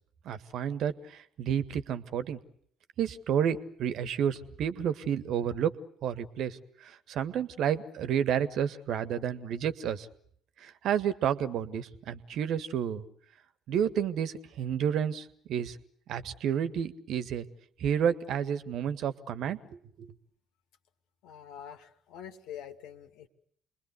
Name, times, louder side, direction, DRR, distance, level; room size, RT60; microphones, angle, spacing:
voice 1, 0.3-2.4 3.0-5.8 6.0-10.1 10.6-13.0 13.7-15.8 16.1-17.5 17.8-19.6 20.0-20.1, right 8 dB, 55° right, 12 dB, 1.7 m, -30 dB
voice 2, 21.2-23.3, left 9 dB, 60° left, 8 dB, 2.4 m, -45 dB
30.0 x 22.5 x 8.2 m, 0.65 s
figure-of-eight pair, 50°, 0 cm